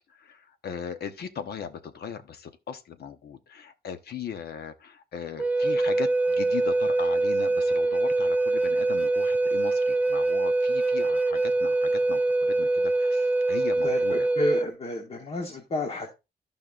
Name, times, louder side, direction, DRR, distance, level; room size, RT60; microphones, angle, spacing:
voice 1, 0.1-14.3, left 7 dB, 75° left, 1.0 m, -39 dB
Wind instrument woodwind instrument, 5.4-14.7, right 2 dB, 10° right, 0.4 m, -24 dB
voice 2, 13.8-16.1, left 1 dB, 40° left, 1.2 m, -30 dB
14.0 x 5.4 x 2.5 m
wide cardioid pair, 140°, 17 cm